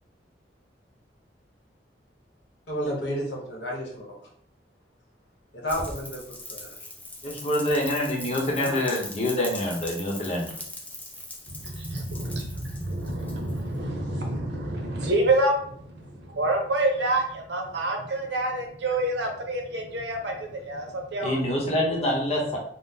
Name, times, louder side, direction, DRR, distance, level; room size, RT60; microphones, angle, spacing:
voice 1, 2.7-4.0 5.6-6.2 6.5-6.6 8.6-8.8, equal, 85° left, 1.0 m, -31 dB
Rain, 5.7-13.8, left 2 dB, 10° left, 0.4 m, -40 dB
voice 2, 7.2-10.5 21.2-22.6, left 1 dB, 35° left, 0.8 m, -26 dB
voice 3, 11.5-21.3, right 1 dB, 85° right, 0.7 m, -28 dB
3.7 x 2.0 x 2.7 m
head